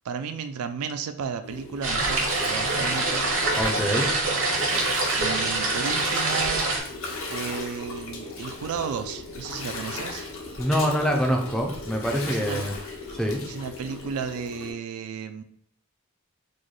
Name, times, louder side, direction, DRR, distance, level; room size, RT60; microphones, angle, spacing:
voice 1, 0.0-3.3 5.2-6.7 7.3-10.3 12.3-12.6 13.4-15.4, right 6 dB, 85° right, 9 dB, 0.3 m, -33 dB
Gurgling, 1.4-14.7, left 3 dB, 65° left, 0.7 m, -37 dB
sound 1, 1.8-6.8, right 2 dB, 60° right, 0.7 m, -25 dB
voice 2, 3.6-4.1 10.6-12.7 13.1-13.4, equal, ahead, 1 dB, 0.3 m, -25 dB
3.1 x 2.2 x 3.8 m, 0.66 s
head